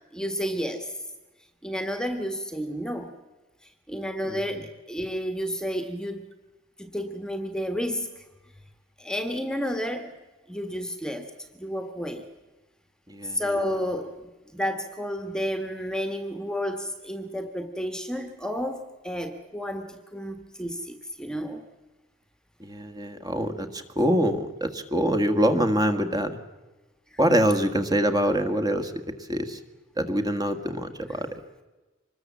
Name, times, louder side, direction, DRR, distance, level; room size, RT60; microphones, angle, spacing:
voice 1, 0.1-0.9 1.6-3.1 3.9-6.3 6.8-8.2 9.0-10.1 10.5-11.3 11.5-12.2 13.2-14.1 14.5-21.6 27.1-27.2, equal, 5° left, 7 dB, 1.5 m, -31 dB
voice 2, 13.1-13.4 22.6-26.4 27.2-28.9 29.3-29.6 30.0-31.3, equal, 20° right, 6 dB, 1.7 m, -24 dB
25.5 x 21.0 x 7.3 m, 1.1 s
head